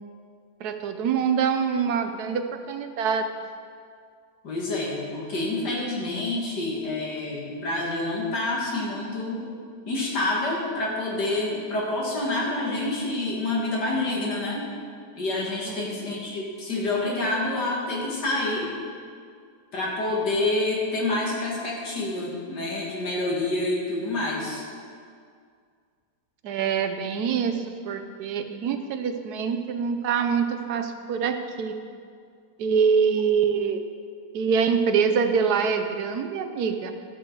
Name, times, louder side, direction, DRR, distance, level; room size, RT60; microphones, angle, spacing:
voice 1, 0.6-3.3 15.7-16.1 26.4-31.8 32.6-33.8 34.3-36.9, right 6 dB, 75° right, 7 dB, 1.2 m, -25 dB
voice 2, 4.4-9.5 9.9-14.7 15.2-18.7 19.7-24.6, left 2 dB, 80° left, -3 dB, 2.6 m, -27 dB
13.5 x 7.8 x 4.7 m, 2.2 s
omnidirectional pair, 1.8 m